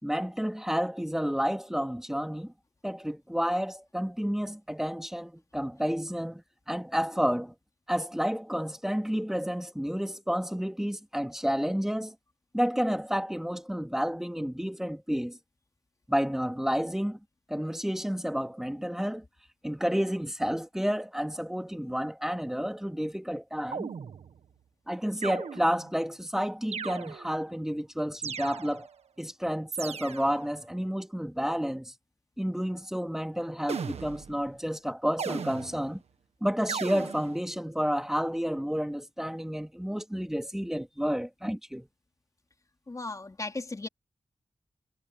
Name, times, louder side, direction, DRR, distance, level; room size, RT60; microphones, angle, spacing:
voice 1, 0.0-2.5 2.8-7.5 7.9-12.1 12.5-15.4 16.1-17.2 17.5-19.2 19.6-23.9 24.9-28.9 29.2-31.9 32.4-36.0 36.4-41.9, equal, 5° right, 2.4 m, -30 dB
sound 1, 23.7-24.5 25.2-26.0 26.7-27.5 28.2-29.0 29.7-30.5 33.7-34.5 35.2-36.0 36.7-37.4, right 6 dB, 90° right, 1.3 m, -37 dB
voice 2, 42.9-43.9, left 3 dB, 30° left, 3.7 m, -36 dB
wide cardioid pair, 85°, 10 cm